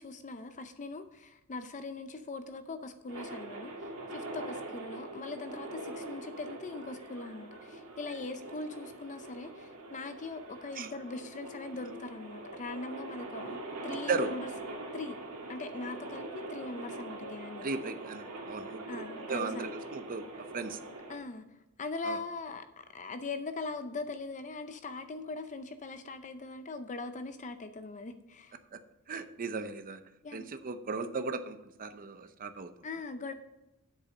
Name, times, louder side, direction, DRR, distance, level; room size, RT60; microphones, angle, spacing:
voice 1, 0.0-14.5 14.9-15.2 15.5-17.7 18.9-19.7 21.1-21.4 21.8-28.6 30.2-30.5 32.8-33.3, left 3 dB, 35° left, 9 dB, 0.6 m, -41 dB
sound 1, 3.1-21.2, right 2 dB, 70° right, 2.2 m, -43 dB
voice 2, 17.6-20.8 22.0-22.2 28.7-28.8 29.1-30.0 30.3-32.9, right 4 dB, 40° right, 9 dB, 0.6 m, -36 dB
8.3 x 6.7 x 5.2 m, 0.93 s
head